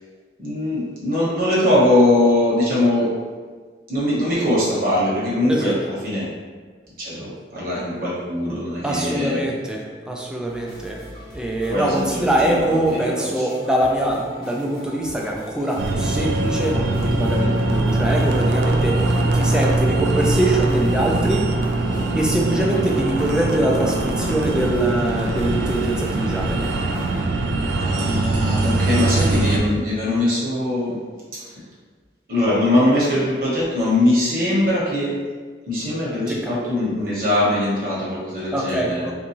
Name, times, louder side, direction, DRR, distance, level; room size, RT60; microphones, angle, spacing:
voice 1, 0.4-3.1 3.9-6.3 7.0-9.4 11.7-13.5 17.3-17.5 22.6-22.8 27.8-31.0 31.3-31.4 32.3-35.1 35.7-39.1, left 1 dB, 50° right, -7 dB, 1.1 m, -21 dB
voice 2, 8.8-21.5 21.9-26.7 36.3-36.6 38.5-39.1, right 1 dB, 5° right, -1 dB, 0.3 m, -23 dB
sound 1, 10.5-27.2, equal, 25° left, 0.7 m, -42 dB
sound 2, 15.8-29.6, right 2 dB, 80° right, 0.4 m, -22 dB
3.5 x 2.6 x 2.9 m, 1.5 s
head